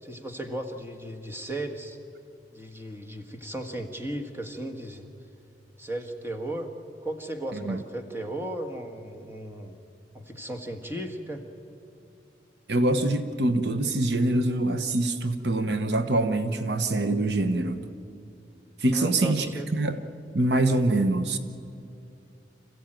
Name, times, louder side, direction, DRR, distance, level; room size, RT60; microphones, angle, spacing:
voice 1, 0.0-2.0 2.5-5.1 5.8-6.7 7.0-9.8 10.1-11.4 18.9-19.7, right 1 dB, 15° right, 4 dB, 1.6 m, -35 dB
voice 2, 12.7-17.8 18.8-20.0 20.3-21.4, right 2 dB, 65° right, 9 dB, 1.0 m, -24 dB
27.0 x 15.5 x 9.0 m, 2.7 s
head